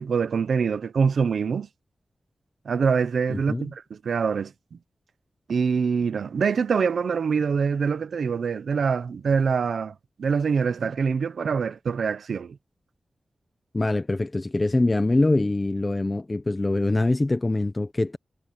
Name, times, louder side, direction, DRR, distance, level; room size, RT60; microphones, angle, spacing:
voice 1, 0.0-1.7 2.6-4.8 5.5-12.6, right 6 dB, 85° right, 1.0 m, -25 dB
voice 2, 3.3-3.7 13.7-18.2, left 2 dB, 25° left, 0.9 m, -24 dB
wide cardioid pair, 120°, 0 cm